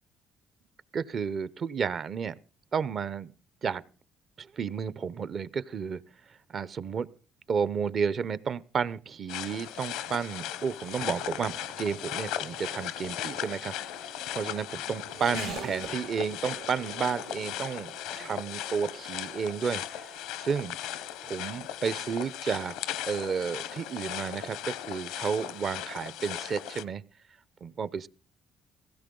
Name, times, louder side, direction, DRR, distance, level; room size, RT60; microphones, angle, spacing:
voice 1, 0.9-2.3 2.7-3.3 3.6-3.8 4.4-6.0 6.3-7.1 7.5-13.7 14.0-20.8 21.2-22.7 23.1-27.0 27.6-28.1, right 6 dB, 50° right, 0.7 m, -32 dB
Race car auto racing / Accelerating revving vroom, 9.1-25.2, right 5 dB, 85° right, 2.9 m, -48 dB
sound 1, 9.3-26.8, left 12 dB, 90° left, 0.8 m, -37 dB
16.5 x 15.0 x 3.8 m
supercardioid pair, 80°, 0 cm